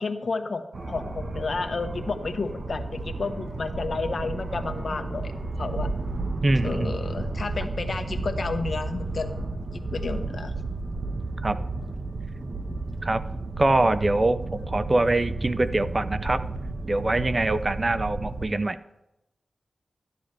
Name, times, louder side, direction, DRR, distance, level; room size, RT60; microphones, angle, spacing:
voice 1, 0.0-5.9 6.6-9.3 9.7-10.5, left 4 dB, 60° left, 7 dB, 0.9 m, -31 dB
sound 1, 0.7-18.5, right 2 dB, 55° right, 1.1 m, -32 dB
voice 2, 6.4-6.9 11.4-11.6 13.0-13.2 13.6-16.4 16.9-18.8, right 2 dB, 30° right, 13 dB, 0.5 m, -24 dB
12.5 x 10.0 x 3.3 m, 0.92 s
wide cardioid pair, 80°, 0 cm